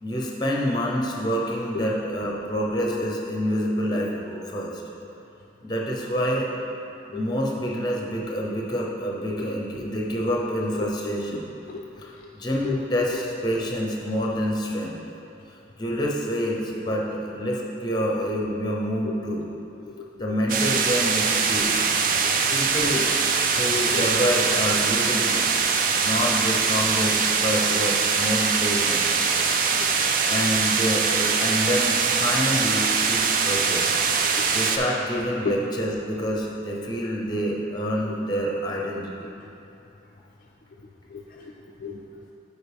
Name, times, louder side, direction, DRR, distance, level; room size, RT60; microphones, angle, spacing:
voice 1, 0.0-4.8 5.6-6.5 7.1-11.5 12.0-15.0 15.8-19.4 20.2-21.9 22.5-23.1 23.6-25.4 26.0-29.1 30.2-34.0 34.5-39.3, equal, 25° left, -2 dB, 0.8 m, -27 dB
voice 2, 19.8-20.3 20.7-20.8 22.2-22.6 22.9-23.1 23.9-24.1 27.7-27.8 29.3-29.5 29.8-29.9 34.2-34.6 35.4-35.6 38.0-38.2 41.1-41.5 41.8-42.2, left 5 dB, 50° left, -2 dB, 0.4 m, -35 dB
sound 1, 20.5-34.8, right 5 dB, 45° right, 0.4 m, -22 dB
9.2 x 4.7 x 3.5 m, 2.8 s
head